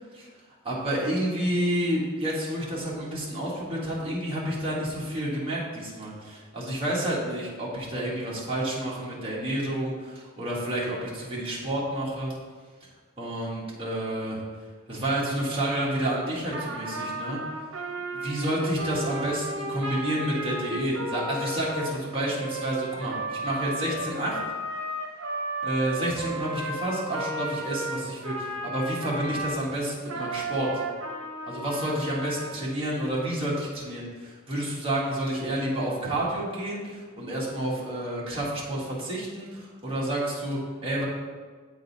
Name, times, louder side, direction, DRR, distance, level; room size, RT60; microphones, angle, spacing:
voice 1, 0.6-12.4 13.2-14.4 14.9-17.4 18.1-24.4 25.6-30.8 31.4-41.1, right 1 dB, 25° right, -6 dB, 1.7 m, -29 dB
Trumpet, 16.5-29.6 30.1-32.6, right 1 dB, 65° right, 1.1 m, -34 dB
8.4 x 4.0 x 4.1 m, 1.5 s
head